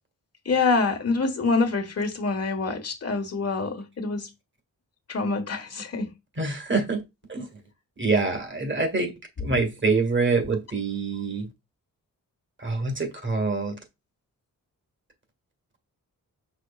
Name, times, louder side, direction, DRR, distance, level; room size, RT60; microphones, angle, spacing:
voice 1, 0.4-4.3 5.1-6.1 9.5-9.6, left 4 dB, 45° left, 1.5 m, -26 dB
voice 2, 6.4-7.0 7.3-7.5 8.0-9.1 9.4-11.5 12.6-13.8, right 3 dB, 35° right, 1.8 m, -25 dB
6.4 x 6.2 x 2.4 m
wide cardioid pair, 130°, 34 cm